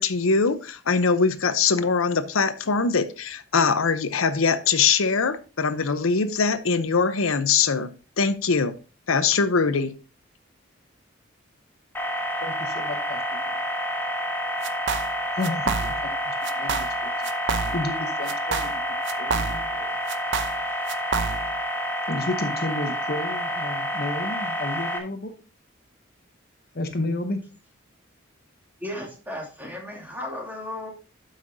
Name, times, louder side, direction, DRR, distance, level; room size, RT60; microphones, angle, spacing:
voice 1, 0.0-8.8 9.1-9.9, left 5 dB, 80° left, 12 dB, 0.8 m, -22 dB
sound 1, 11.9-25.0, equal, 10° left, 1.4 m, -29 dB
voice 2, 12.4-13.5 15.3-17.1 17.7-18.7 19.2-20.0 22.1-25.3 26.7-27.4, left 2 dB, 50° left, 7 dB, 0.9 m, -32 dB
sound 2, 14.6-15.2 15.4-16.2 16.4-17.0 17.2-18.0 18.3-19.8 20.1-21.6, right 5 dB, 60° right, 0.7 m, -29 dB
voice 3, 28.8-30.9, left 1 dB, 10° right, -1 dB, 2.8 m, -35 dB
12.5 x 5.7 x 2.7 m, 0.34 s
head